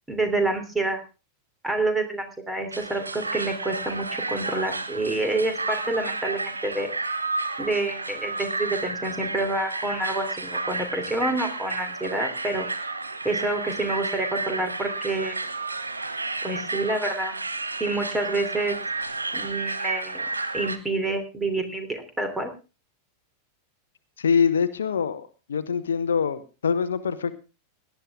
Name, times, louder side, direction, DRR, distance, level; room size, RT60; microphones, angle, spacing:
voice 1, 0.1-1.0 1.6-6.9 7.6-12.7 13.2-15.4 16.4-17.4 17.8-18.8 19.3-20.2 20.5-22.5, right 2 dB, 10° right, 7 dB, 3.3 m, -28 dB
sound 1, 2.7-20.8, right 3 dB, 80° right, 1.3 m, -31 dB
voice 2, 24.2-27.3, left 6 dB, 65° left, 12 dB, 1.0 m, -24 dB
18.0 x 11.5 x 3.7 m, 0.32 s
figure-of-eight pair, 90°, 0 cm